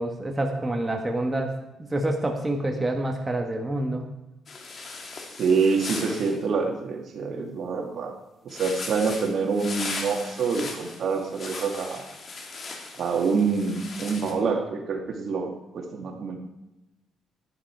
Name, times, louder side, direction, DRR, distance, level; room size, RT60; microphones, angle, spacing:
voice 1, 0.0-4.0, right 1 dB, 20° right, 2 dB, 1.6 m, -27 dB
sound 1, 4.5-6.4 8.5-14.3, left 3 dB, 50° left, 2.7 m, -38 dB
voice 2, 5.4-8.1 8.4-12.1 13.0-16.4, right 5 dB, 60° right, 2 dB, 2.5 m, -26 dB
11.5 x 10.5 x 4.7 m, 0.97 s
cardioid pair, 90°, 0 cm